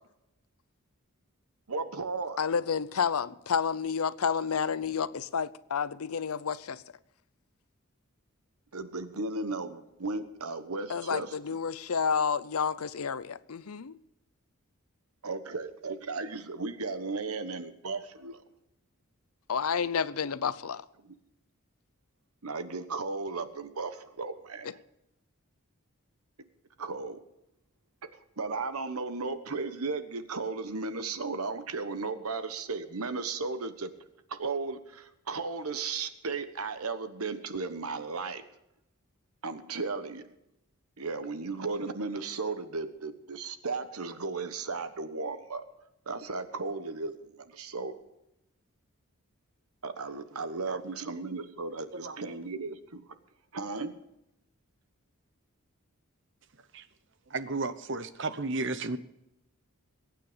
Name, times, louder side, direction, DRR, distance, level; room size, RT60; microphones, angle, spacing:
voice 1, 1.7-2.4 8.7-11.4 15.2-18.4 22.4-24.7 26.8-27.2 28.4-33.9 34.3-38.4 39.4-40.2 41.0-45.6 46.1-47.1 47.5-47.9 49.8-53.0 53.5-53.9, right 3 dB, 80° right, 1.2 m, -35 dB
voice 2, 2.4-6.8 10.9-13.9 19.5-20.8 24.6-24.7, left 6 dB, 80° left, 0.6 m, -30 dB
voice 3, 57.3-59.0, right 3 dB, 55° right, 0.8 m, -33 dB
22.0 x 9.2 x 5.1 m
head